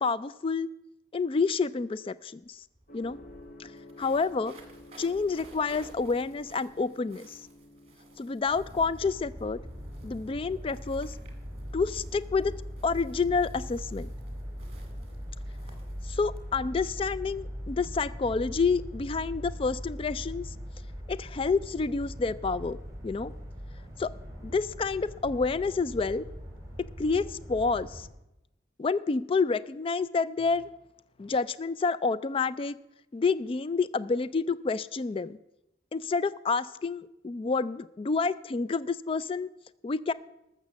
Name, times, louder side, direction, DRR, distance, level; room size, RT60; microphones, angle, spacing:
voice 1, 0.0-0.7 1.1-2.6 2.9-3.2 3.6-3.7 4.0-4.6 5.0-7.4 8.2-9.6 10.0-11.1 11.7-12.5 12.8-14.1 16.1-20.5 21.1-22.8 23.0-23.3 24.0-24.1 24.4-26.2 27.0-28.1 28.8-30.7 31.2-32.8 33.1-35.4 35.9-39.5 39.8-40.1, left 4 dB, 30° left, 17 dB, 0.3 m, -29 dB
sound 1, 2.4-2.5 2.7-17.2, right 1 dB, 35° right, 2.1 m, -54 dB
Gong, 2.9-20.7, left 1 dB, 50° left, 1.8 m, -56 dB
sound 2, 8.5-28.1, equal, 20° right, 3.0 m, -41 dB
13.5 x 6.6 x 7.2 m, 0.89 s
head